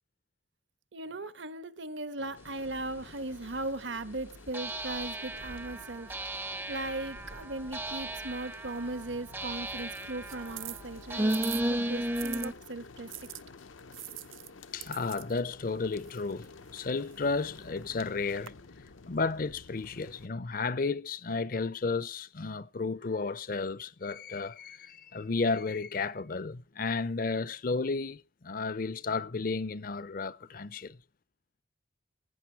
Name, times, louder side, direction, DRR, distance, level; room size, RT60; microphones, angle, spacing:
voice 1, 0.9-13.1, right 2 dB, 70° right, 1.2 m, -38 dB
sound 1, 2.2-20.3, left 4 dB, 85° left, 0.8 m, -52 dB
sound 2, 3.0-3.1 4.5-12.5, right 1 dB, 10° right, 0.5 m, -35 dB
sound 3, 8.3-12.5 13.1-18.5, right 16 dB, 90° right, 0.6 m, -47 dB
voice 2, 14.7-18.5 19.1-31.0, left 4 dB, 45° left, 0.6 m, -33 dB
17.5 x 9.3 x 4.5 m
head